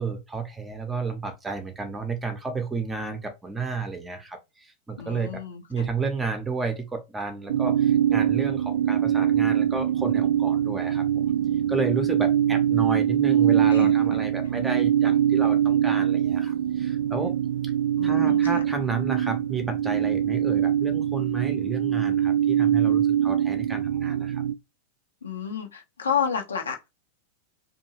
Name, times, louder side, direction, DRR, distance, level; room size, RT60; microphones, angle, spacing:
voice 1, 0.0-5.4 5.7-11.2 11.7-17.4 18.0-24.4, right 4 dB, 15° right, 0.8 m, -32 dB
voice 2, 5.0-5.9 13.7-14.2 18.0-18.6 25.2-26.9, left 7 dB, 70° left, 0.8 m, -31 dB
sound 1, 7.5-24.5, right 10 dB, 55° right, 0.3 m, -23 dB
2.7 x 2.5 x 3.0 m
figure-of-eight pair, 90°, 0 cm